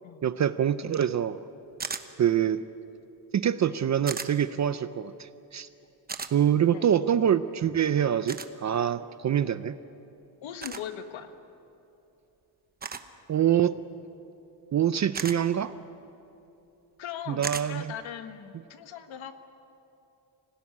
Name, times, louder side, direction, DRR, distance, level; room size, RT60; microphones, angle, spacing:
voice 1, 0.2-1.4 2.2-2.6 3.3-5.7 6.3-9.8 13.3-13.7 14.7-15.7 17.3-17.9, right 9 dB, 40° right, 13 dB, 0.5 m, -25 dB
sound 1, 1.8-2.1 4.1-4.3 6.1-6.3 8.3-8.5 10.6-10.8 12.8-13.1 15.1-15.4 17.4-17.7, right 5 dB, 20° right, 0.9 m, -34 dB
voice 2, 10.4-11.3 17.0-19.3, left 9 dB, 85° left, 8 dB, 1.7 m, -39 dB
26.0 x 17.0 x 9.8 m, 2.9 s
cardioid pair, 165°, 46 cm